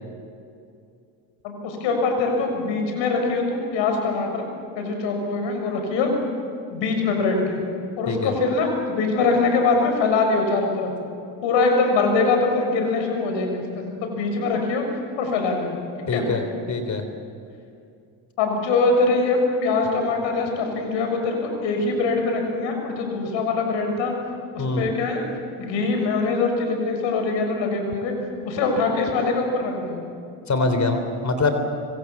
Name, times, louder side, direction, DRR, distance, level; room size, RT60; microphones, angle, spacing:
voice 1, 1.4-4.4 4.7-6.1 6.7-7.6 8.0-10.9 11.4-14.8 15.2-15.8 16.1-16.2 18.4-24.1 24.5-25.2 25.6-28.1 28.4-30.0, left 3 dB, 75° left, 3 dB, 6.7 m, -23 dB
voice 2, 16.1-17.0 24.6-24.8 30.5-31.5, left 3 dB, 40° left, 7 dB, 3.5 m, -24 dB
25.5 x 25.5 x 7.3 m, 2.5 s
supercardioid pair, 80°, 45 cm